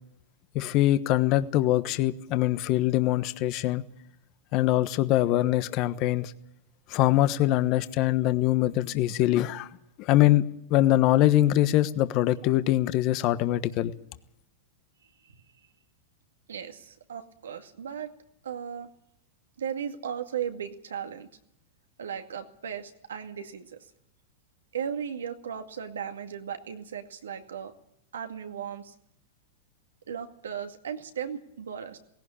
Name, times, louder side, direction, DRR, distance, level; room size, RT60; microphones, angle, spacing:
voice 1, 0.5-3.8 4.5-6.3 6.9-9.7 10.0-10.4 10.7-13.9, left 14 dB, 45° left, 1.2 m, -23 dB
voice 2, 16.5-18.1 18.4-18.9 19.6-21.3 22.0-23.9 24.7-27.7 28.1-28.9 30.1-32.0, right 8 dB, 90° right, 2.2 m, -36 dB
18.0 x 16.5 x 10.0 m
hypercardioid pair, 115°, 0 cm